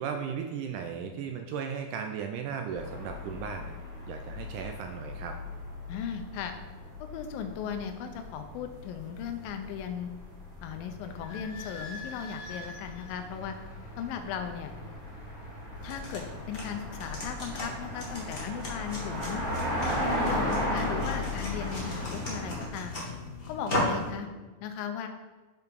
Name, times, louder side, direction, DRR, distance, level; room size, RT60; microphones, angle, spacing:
voice 1, 0.0-3.8 4.1-5.4 21.0-21.1, right 7 dB, 80° right, 4 dB, 1.9 m, -36 dB
sound 1, 2.7-22.7, left 1 dB, 30° right, 1.8 m, -37 dB
voice 2, 5.9-6.6 7.1-10.1 10.6-13.6 14.0-14.7 15.8-19.4 19.9-22.9 23.5-24.3 24.6-25.1, left 7 dB, 90° left, 7 dB, 2.5 m, -37 dB
Idling / Squeak, 11.0-17.4, left 2 dB, 70° left, 1.8 m, -47 dB
sound 2, 15.8-24.1, left 1 dB, 45° left, 0.7 m, -37 dB
7.1 x 5.1 x 4.7 m, 1.3 s
omnidirectional pair, 4.0 m